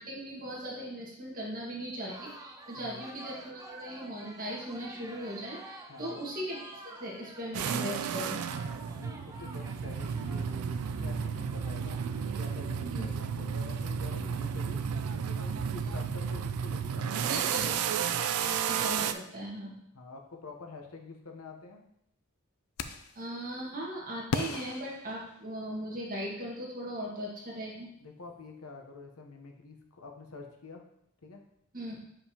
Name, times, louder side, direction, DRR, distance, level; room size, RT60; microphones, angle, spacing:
voice 1, 0.0-8.4 12.9-13.1 15.8-15.9 17.3-19.8 23.2-27.9 31.7-32.0, equal, 40° right, -4 dB, 1.8 m, -39 dB
sound 1, 2.1-12.7, right 2 dB, 15° right, 0.5 m, -50 dB
voice 2, 5.9-6.2 8.8-12.0 12.3-14.8 15.2-17.7 19.9-21.8 28.0-30.8 31.2-31.4, left 3 dB, 85° left, 2 dB, 1.0 m, -47 dB
sound 2, 7.5-19.1, right 7 dB, 85° right, 0.4 m, -32 dB
sound 3, 22.8-23.2 24.3-25.8, left 4 dB, 70° left, 0.4 m, -36 dB
6.6 x 5.1 x 2.9 m, 0.74 s
head